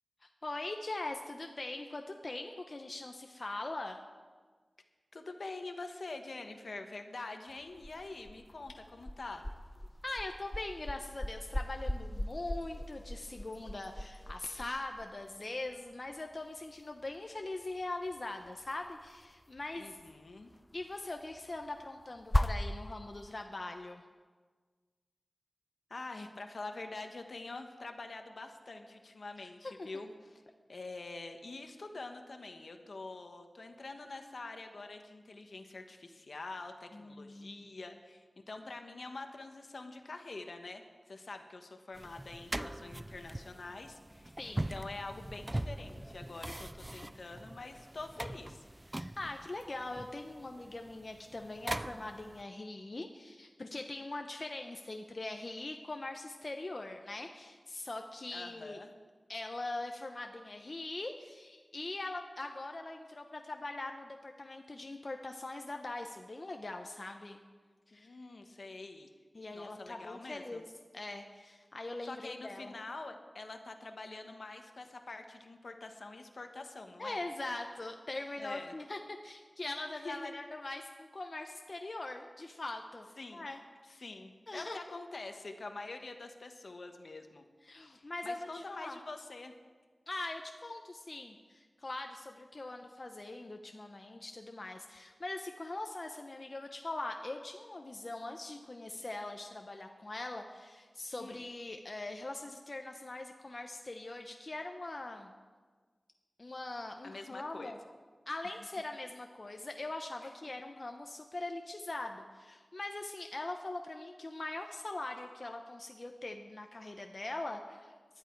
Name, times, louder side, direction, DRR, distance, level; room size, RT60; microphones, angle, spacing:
voice 1, 0.4-4.0 10.0-20.0 20.7-24.0 29.4-29.5 29.8-29.9 36.9-37.6 44.4-44.7 48.9-58.8 59.3-67.4 67.9-68.2 69.3-70.6 70.9-72.7 77.0-83.1 83.3-83.6 84.0-84.1 84.5-84.8 87.6-89.0 90.1-105.3 106.4-107.8 108.3-117.9, left 2 dB, 50° left, 4 dB, 0.9 m, -42 dB
voice 2, 5.1-9.4 19.8-20.5 25.9-30.4 30.7-48.7 58.3-58.9 67.9-69.1 69.5-70.6 72.0-77.2 78.4-78.7 80.0-80.3 83.2-83.5 83.9-87.4 87.8-89.5 101.2-101.4 107.0-107.7 108.4-108.5 110.2-110.3, left 3 dB, 70° left, 5 dB, 1.3 m, -46 dB
sound 1, 7.5-23.4, left 1 dB, 20° left, 0.7 m, -39 dB
sound 2, 41.9-52.4, right 1 dB, 20° right, 0.4 m, -42 dB
19.0 x 12.0 x 4.7 m, 1.5 s
wide cardioid pair, 65°, 0 cm